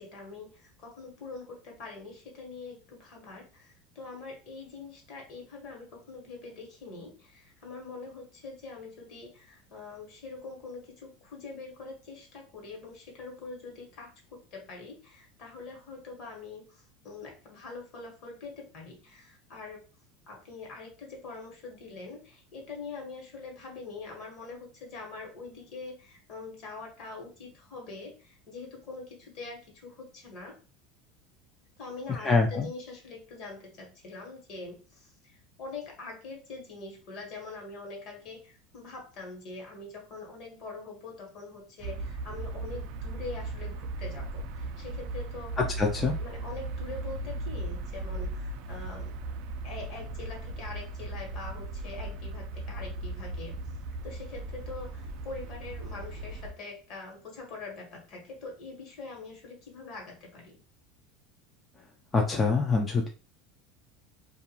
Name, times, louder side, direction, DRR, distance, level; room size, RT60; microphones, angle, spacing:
voice 1, 0.0-19.8 20.3-30.6 31.8-45.6 46.2-49.2 49.6-53.6 54.0-60.6, left 3 dB, 55° left, 0 dB, 1.2 m, -44 dB
voice 2, 32.2-32.7 45.6-46.2 62.1-63.1, left 4 dB, 20° left, 0 dB, 0.4 m, -25 dB
sound 1, 41.8-56.5, right 2 dB, 65° right, 0.3 m, -37 dB
2.4 x 2.2 x 2.8 m, 0.35 s
supercardioid pair, 130°, 0 cm